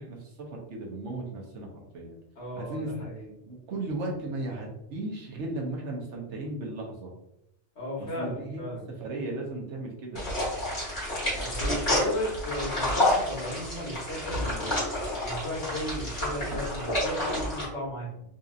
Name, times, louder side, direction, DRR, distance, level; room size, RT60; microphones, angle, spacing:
voice 1, 0.0-2.2 2.5-2.9 3.5-7.1 8.0-8.6 9.0-10.2, right 2 dB, 85° right, -1 dB, 1.2 m, -36 dB
voice 2, 2.3-3.3 7.7-8.9 11.4-14.8 15.2-18.2, equal, 75° left, -4 dB, 1.6 m, -35 dB
sound 1, 10.1-17.6, left 1 dB, 25° left, 1.5 m, -29 dB
4.0 x 2.7 x 2.4 m, 0.82 s
omnidirectional pair, 1.2 m